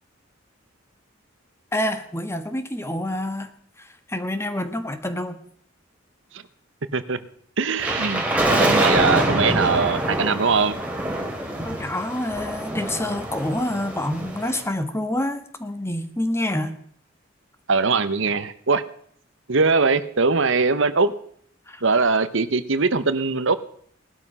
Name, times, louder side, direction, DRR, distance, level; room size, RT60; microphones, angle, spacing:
voice 1, 1.7-3.5 3.8-5.4 11.6-16.8 21.7-21.8, left 1 dB, 15° left, 9 dB, 1.4 m, -27 dB
voice 2, 7.6-10.8 17.7-18.8 19.5-21.1 21.8-23.6, right 4 dB, 70° right, 12 dB, 1.0 m, -21 dB
sound 1, 7.8-14.6, right 1 dB, 5° right, 3.2 m, -25 dB
18.5 x 12.5 x 5.6 m, 0.62 s
head